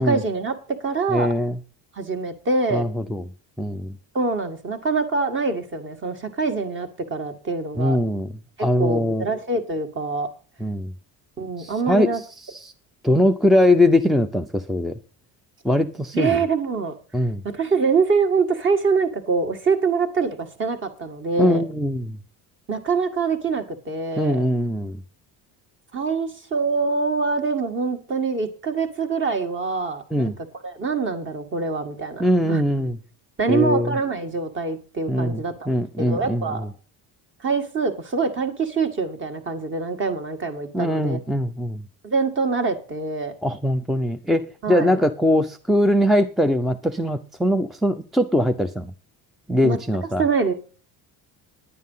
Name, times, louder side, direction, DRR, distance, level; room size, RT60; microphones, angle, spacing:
voice 1, 0.0-1.3 2.0-2.9 4.1-8.0 8.6-10.3 11.4-12.2 16.1-16.9 17.4-21.6 22.7-24.4 25.9-30.3 30.6-32.6 33.4-35.7 36.0-36.7 37.4-41.2 42.0-43.3 44.6-45.0 49.6-49.8 50.2-50.5, right 4 dB, 30° right, 7 dB, 1.8 m, -24 dB
voice 2, 1.1-1.6 2.7-3.3 3.6-4.0 7.8-8.3 8.6-9.3 10.6-10.9 11.6-12.2 12.5-12.7 13.0-15.0 15.6-16.4 17.1-17.4 21.4-22.2 24.2-25.0 30.1-30.3 32.2-33.0 33.5-34.0 35.1-36.7 40.7-41.8 43.4-48.9 49.5-50.2, left 1 dB, ahead, 8 dB, 0.5 m, -21 dB
10.5 x 9.6 x 5.5 m, 0.38 s
cardioid pair, 135°, 37 cm